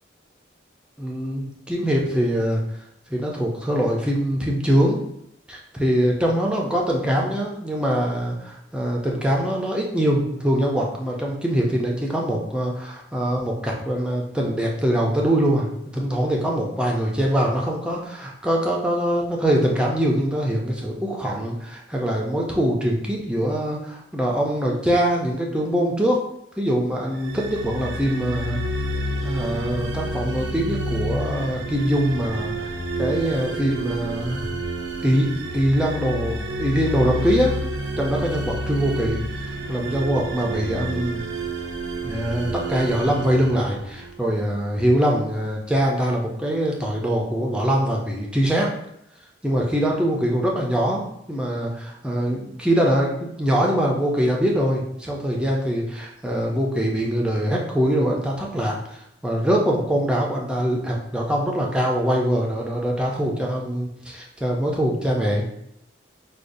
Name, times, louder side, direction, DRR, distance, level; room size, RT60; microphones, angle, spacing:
voice 1, 1.0-2.6 3.1-5.0 5.5-15.7 15.9-26.2 26.6-28.6 29.2-34.5 35.0-37.6 38.0-39.2 39.5-41.2 42.0-48.7 49.4-65.5, equal, 5° right, -2 dB, 0.4 m, -23 dB
sound 1, 27.1-44.3, right 1 dB, 70° right, 0.5 m, -29 dB
4.9 x 2.3 x 2.6 m, 0.76 s
head